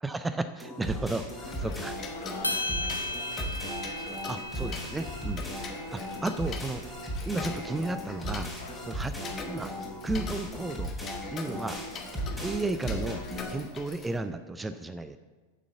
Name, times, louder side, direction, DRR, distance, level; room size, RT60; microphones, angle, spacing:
voice 1, 0.0-1.9 4.3-5.5 5.9-6.8 7.3-8.5 8.9-9.7 10.0-10.9 11.3-11.8 12.4-13.2 13.5-15.2, right 2 dB, 10° right, 11 dB, 0.4 m, -33 dB
sound 1, 0.6-13.5, equal, 5° left, 3.0 m, -36 dB
voice 2, 1.4-3.6 8.6-8.8, left 4 dB, 60° left, -1 dB, 2.3 m, -46 dB
Tick-tock, 1.4-14.2, left 5 dB, 25° left, 1.1 m, -43 dB
sound 2, 2.4-6.9, left 1 dB, 85° left, 0.9 m, -36 dB
7.3 x 6.7 x 7.1 m, 1.3 s
figure-of-eight pair, 90°, 0 cm